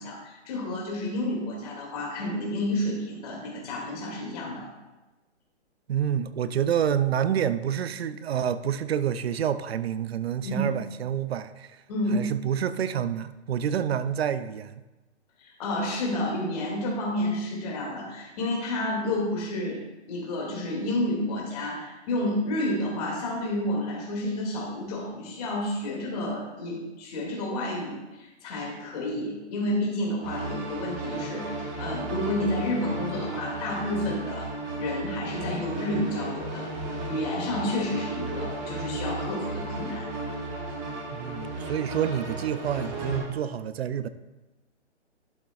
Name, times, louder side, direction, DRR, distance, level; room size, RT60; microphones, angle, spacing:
voice 1, 0.0-4.7 10.4-10.7 11.9-12.3 15.4-19.8 20.1-34.5 34.8-36.7 37.1-40.1, left 1 dB, 35° left, -2 dB, 2.4 m, -30 dB
voice 2, 5.9-11.8 12.1-14.8 41.1-44.1, right 9 dB, 60° right, 13 dB, 0.6 m, -28 dB
sound 1, 30.2-43.2, right 2 dB, 25° right, 1.9 m, -34 dB
11.5 x 6.7 x 2.4 m, 1.1 s
hypercardioid pair, 160°, 35 cm